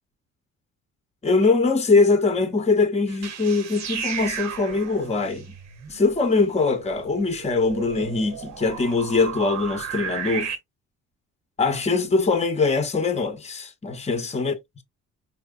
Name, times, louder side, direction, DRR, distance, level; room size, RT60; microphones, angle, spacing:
voice 1, 1.2-5.5 5.9-10.5 11.6-14.5, left 3 dB, 20° left, 1.0 m, -22 dB
sound 1, 3.1-10.6, right 7 dB, 60° right, 1.2 m, -34 dB
4.8 x 3.0 x 2.5 m
cardioid pair, 90°, 30 cm